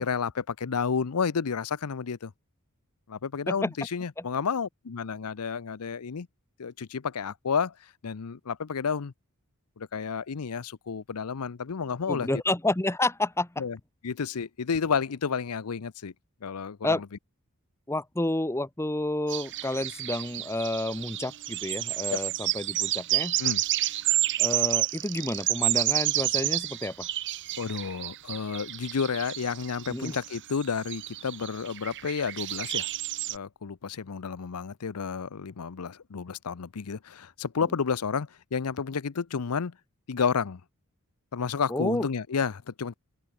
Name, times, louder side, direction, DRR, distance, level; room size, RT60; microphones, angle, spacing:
voice 1, 0.0-2.3 3.1-6.3 6.6-9.1 9.8-12.3 13.6-13.8 14.0-16.1 16.4-17.1 22.1-22.2 23.4-23.6 27.6-32.9 33.3-39.8 40.1-40.6 41.3-42.9, left 6 dB, 90° left, 0.6 m, -31 dB
voice 2, 12.1-13.6 16.8-17.0 17.9-23.4 24.4-27.1 29.9-30.1 41.7-42.1, left 1 dB, 10° left, 1.1 m, -30 dB
sound 1, 19.3-33.4, right 15 dB, 55° right, 0.8 m, -30 dB
open air
head